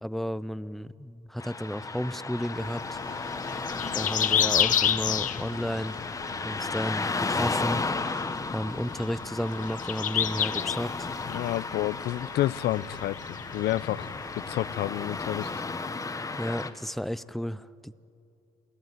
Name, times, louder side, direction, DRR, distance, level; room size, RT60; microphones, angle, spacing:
voice 1, 0.0-3.0 3.9-6.0 6.4-7.8 8.5-11.1 16.4-17.9, equal, ahead, 17 dB, 0.6 m, -32 dB
Car passing by / Traffic noise roadway noise, 1.4-16.7, left 3 dB, 20° left, 1.4 m, -34 dB
sound 1, 2.6-15.6, left 9 dB, 50° left, 0.9 m, -32 dB
voice 2, 11.3-14.1 14.5-15.5, left 14 dB, 75° left, 18 dB, 0.7 m, -30 dB
28.5 x 18.0 x 9.5 m, 2.6 s
cardioid pair, 110°, 17 cm